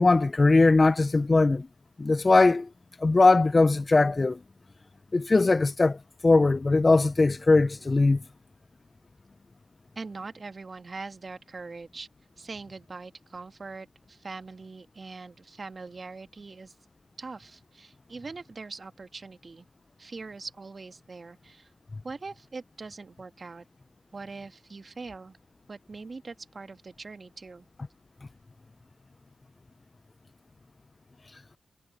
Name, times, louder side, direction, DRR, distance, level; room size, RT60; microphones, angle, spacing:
voice 1, 0.0-1.7 2.0-2.7 3.0-4.4 5.1-8.2, left 3 dB, 35° left, 0.6 m, -20 dB
voice 2, 9.9-12.1 12.4-16.7 17.2-19.7 20.0-21.7 22.0-23.6 24.1-25.4 25.7-27.7, right 4 dB, 45° right, 1.6 m, -42 dB
supercardioid pair, 45°, 0 cm